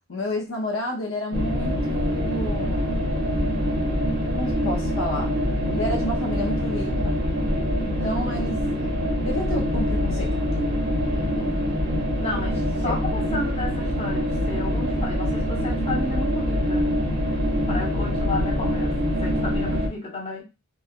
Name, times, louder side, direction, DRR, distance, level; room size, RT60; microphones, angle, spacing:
voice 1, 0.1-3.1 4.3-5.3 5.7-7.2 7.8-8.6 9.2-10.7 12.8-13.0, left 1 dB, 70° left, 0.6 m, -30 dB
sound 1, 1.3-19.9, equal, 55° right, 0.8 m, -24 dB
voice 2, 11.1-11.6 12.2-16.9 17.7-20.4, left 2 dB, 30° left, 0.9 m, -33 dB
3.1 x 2.1 x 2.3 m
head